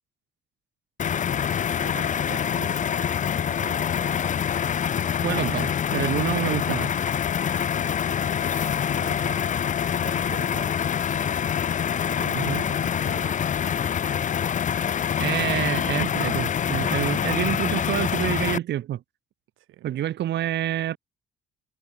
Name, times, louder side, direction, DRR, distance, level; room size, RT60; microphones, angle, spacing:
sound 1, 1.0-18.6, left 8 dB, 40° left, 0.5 m, -25 dB
voice 1, 1.8-4.3 8.9-11.3 12.1-13.5 13.8-14.2 19.6-19.9, right 15 dB, 85° right, 7.9 m, -45 dB
voice 2, 5.2-6.9 12.3-12.6 15.2-19.0 19.8-21.0, right 12 dB, 60° right, 0.7 m, -27 dB
cardioid pair, 90°, 20 cm